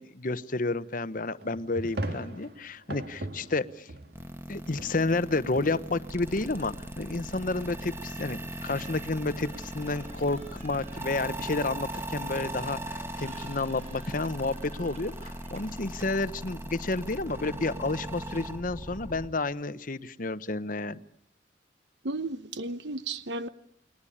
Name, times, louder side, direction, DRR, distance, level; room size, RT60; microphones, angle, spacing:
voice 1, 0.0-3.9 4.5-21.0, left 2 dB, 50° left, 14 dB, 1.0 m, -31 dB
sound 1, 1.4-4.4 4.7-7.1, right 1 dB, 60° right, 2.2 m, -40 dB
sound 2, 4.1-19.3, right 1 dB, 15° right, 1.8 m, -39 dB
sound 3, 8.6-15.9, right 3 dB, 40° right, 4.1 m, -54 dB
voice 2, 22.0-23.5, right 2 dB, 80° right, 11 dB, 1.0 m, -34 dB
29.5 x 21.0 x 8.7 m, 0.74 s
head